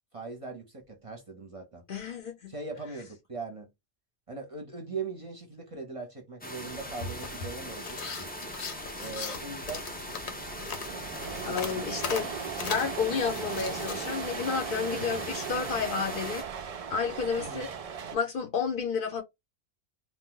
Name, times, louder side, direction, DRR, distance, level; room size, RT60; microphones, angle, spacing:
voice 1, 0.1-1.9 2.5-3.7 4.3-8.0 9.0-9.9 11.2-12.0 17.4-17.7, right 4 dB, 35° right, 0.7 m, -40 dB
voice 2, 1.9-2.5 11.5-12.3 12.6-16.5 16.9-17.7 18.1-19.2, left 6 dB, 55° left, 0.8 m, -31 dB
sound 1, 6.4-16.4, equal, 15° left, 0.3 m, -40 dB
sound 2, 6.6-14.0, left 5 dB, 75° left, 1.0 m, -39 dB
sound 3, 9.8-18.2, right 7 dB, 65° right, 0.3 m, -38 dB
2.6 x 2.3 x 3.7 m
omnidirectional pair, 1.1 m